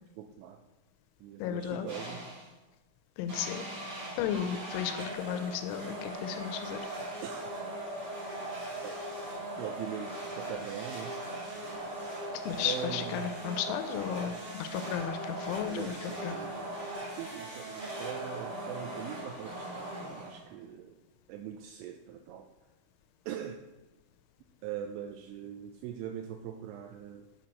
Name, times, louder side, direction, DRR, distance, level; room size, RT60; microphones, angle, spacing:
voice 1, 0.2-0.6 1.2-2.2 7.2-7.5 8.8-9.0 9.6-11.1 12.6-13.3 15.7-21.0 21.3-22.5 23.3-23.6 24.6-27.3, right 9 dB, 85° right, 4 dB, 2.8 m, -42 dB
voice 2, 1.4-1.9 3.2-3.6 4.2-6.8 12.3-16.5, left 9 dB, 85° left, 9 dB, 3.0 m, -34 dB
sound 1, 1.9-2.5 3.3-20.6, right 1 dB, 45° right, 1.2 m, -39 dB
8.4 x 4.4 x 5.2 m, 1.1 s
omnidirectional pair, 5.5 m